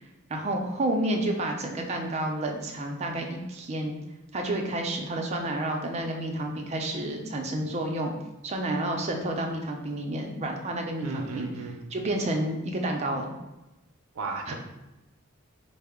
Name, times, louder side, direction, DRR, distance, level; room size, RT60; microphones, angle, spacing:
voice 1, 0.3-4.0 4.3-8.1 8.4-11.5 11.9-13.3 14.5-14.6, right 1 dB, 30° right, 2 dB, 0.4 m, -30 dB
voice 2, 11.0-11.8 14.1-14.5, right 3 dB, 90° right, 1 dB, 0.5 m, -34 dB
4.5 x 2.0 x 3.5 m, 0.97 s
head